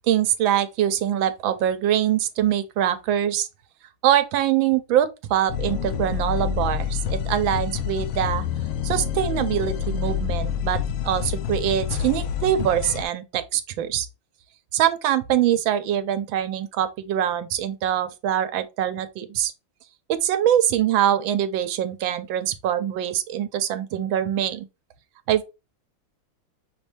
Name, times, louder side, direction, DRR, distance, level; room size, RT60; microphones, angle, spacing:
voice 1, 0.1-3.5 4.0-8.4 8.8-14.1 14.7-19.5 20.1-24.7 25.3-25.5, right 11 dB, 75° right, 1.5 m, -23 dB
sound 1, 5.5-13.0, left 8 dB, 90° left, 1.5 m, -27 dB
6.0 x 2.6 x 3.3 m
omnidirectional pair, 2.3 m